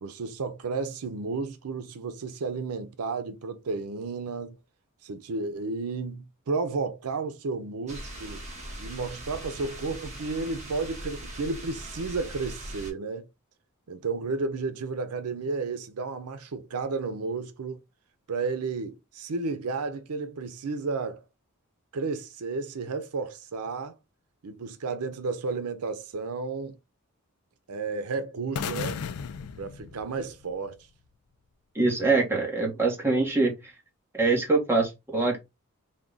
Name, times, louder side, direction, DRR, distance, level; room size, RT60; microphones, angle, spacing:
voice 1, 0.0-4.6 5.0-8.4 8.8-13.3 13.9-17.8 18.3-21.3 21.9-23.9 24.4-26.8 27.7-29.0 29.6-30.9, right 4 dB, 85° right, 0.6 m, -32 dB
sound 1, 7.9-12.9, right 1 dB, 30° right, 1.1 m, -40 dB
sound 2, 28.5-30.6, left 6 dB, 75° left, 0.4 m, -35 dB
voice 2, 31.7-33.5 34.1-35.4, right 3 dB, 10° right, 1.0 m, -24 dB
3.5 x 2.2 x 3.8 m
head